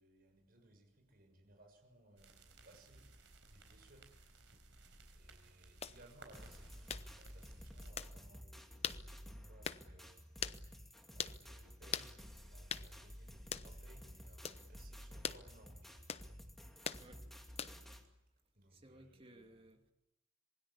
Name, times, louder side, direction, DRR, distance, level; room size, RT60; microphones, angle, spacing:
voice 1, 0.0-4.1 5.1-10.6 11.1-16.1 18.5-19.6, right 1 dB, 50° right, 6.7 m, -64 dB
sound 1, 2.2-7.9, right 2 dB, 70° right, 4.7 m, -60 dB
sound 2, 5.8-6.0 6.9-7.1 8.0-8.1 8.8-9.0 9.6-9.8 10.4-10.6 11.2-11.4 11.9-12.1 12.7-12.9 13.5-13.7 14.4-14.6 15.2-15.4 16.1-16.3 16.8-17.0 17.6-17.9, left 7 dB, 30° left, 0.8 m, -41 dB
sound 3, 6.3-18.0, equal, ahead, 2.5 m, -53 dB
voice 2, 18.7-19.9, right 1 dB, 30° right, 2.5 m, -60 dB
27.0 x 21.5 x 8.4 m
head